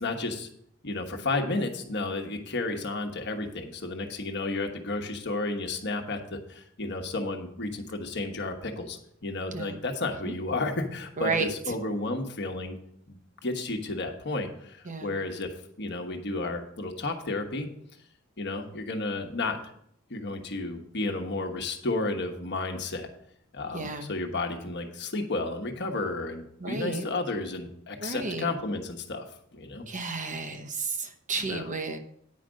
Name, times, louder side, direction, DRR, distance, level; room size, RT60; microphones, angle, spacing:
voice 1, 0.0-0.5 0.8-12.8 13.1-17.7 18.4-19.6 20.1-23.1 23.5-29.2 29.5-29.9 31.3-31.7, left 2 dB, 55° left, 4 dB, 1.2 m, -32 dB
voice 2, 11.2-11.5 14.9-15.1 23.7-24.1 26.6-27.1 28.0-28.5 29.9-32.0, right 3 dB, 40° right, 6 dB, 0.9 m, -32 dB
9.6 x 5.0 x 6.3 m, 0.68 s
head